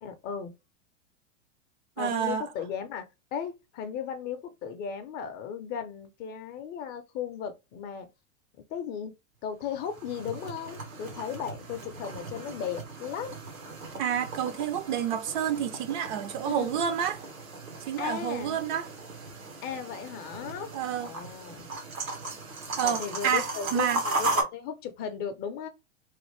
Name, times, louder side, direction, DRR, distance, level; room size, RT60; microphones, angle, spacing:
voice 1, 0.0-0.5 2.0-3.1 3.3-8.1 8.7-9.1 9.4-13.4 16.4-16.9 18.0-18.6 19.6-20.7 21.0-21.7 22.8-25.7, left 7 dB, 25° left, 0.4 m, -36 dB
voice 2, 2.0-2.4 14.0-17.2 17.9-18.8 20.7-21.1 22.8-23.4 23.7-24.0, right 8 dB, 40° right, 0.4 m, -29 dB
sound 1, 9.6-24.4, right 2 dB, 90° right, 1.1 m, -37 dB
3.2 x 2.4 x 3.0 m
hypercardioid pair, 105°, 39 cm